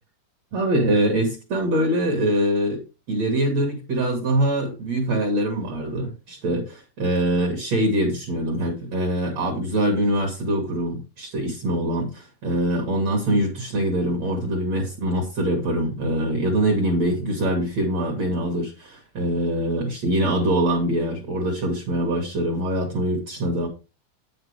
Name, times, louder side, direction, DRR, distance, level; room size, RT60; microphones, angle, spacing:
voice 1, 0.5-2.8 3.1-23.7, right 1 dB, 65° right, 1.6 m, -23 dB
9.1 x 8.8 x 3.3 m
omnidirectional pair, 6.0 m